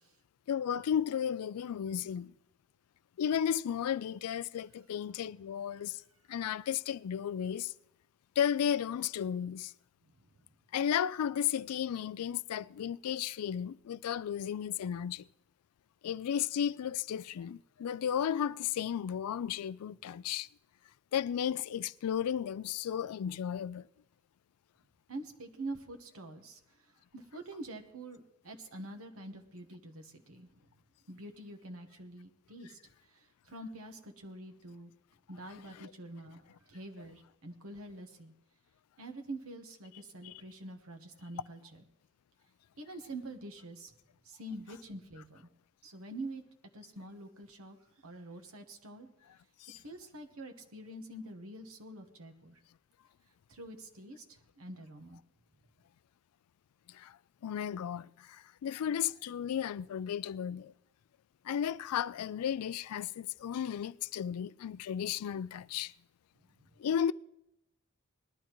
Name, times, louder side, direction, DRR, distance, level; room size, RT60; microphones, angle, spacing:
voice 1, 0.5-2.3 3.2-6.0 6.3-7.7 8.4-9.7 10.7-15.3 16.0-20.5 21.1-23.9 35.8-35.9 49.6-49.8 56.9-57.2 57.4-60.7 61.4-65.9 66.8-67.1, left 9 dB, 80° left, 0.4 m, -34 dB
voice 2, 25.1-30.7 31.1-34.9 35.3-38.3 39.0-41.8 42.8-43.9 44.2-45.5 45.8-46.4 46.7-49.1 49.8-52.6 53.5-55.2 66.6-66.7, right 1 dB, 70° right, 1.2 m, -46 dB
20.5 x 12.0 x 3.1 m
head